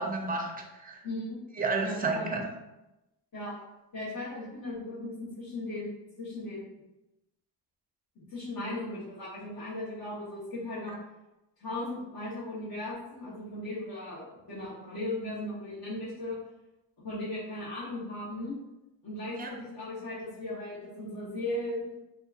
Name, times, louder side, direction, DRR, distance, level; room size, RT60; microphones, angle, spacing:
voice 1, 0.0-1.0 1.6-2.4 19.4-19.5, right 3 dB, 20° right, 1 dB, 0.5 m, -31 dB
voice 2, 1.0-1.4 1.8-2.3 3.3-3.6 3.9-5.9 6.2-6.7 8.2-10.9 11.6-16.4 17.0-18.5 19.0-22.0, left 1 dB, 50° left, -10 dB, 1.1 m, -37 dB
2.8 x 2.4 x 2.4 m, 0.97 s
cardioid pair, 80°, 46 cm